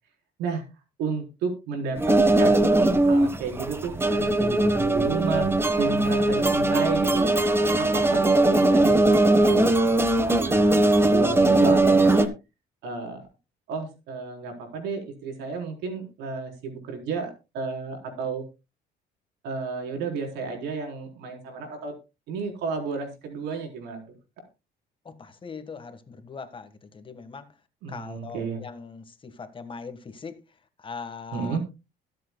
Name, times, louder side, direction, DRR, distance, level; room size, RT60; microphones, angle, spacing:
voice 1, 1.0-7.3 7.8-12.3 12.8-13.3 13.7-18.4 19.4-21.9 22.3-24.0 27.8-28.6 31.3-31.6, right 4 dB, 85° right, 4.1 m, -32 dB
sound 1, 2.0-12.3, right 2 dB, 15° right, 1.2 m, -20 dB
voice 2, 25.0-27.5 27.9-30.4 30.8-31.6, left 5 dB, 30° left, 1.6 m, -40 dB
21.5 x 7.8 x 2.3 m
cardioid pair, 110°, 17 cm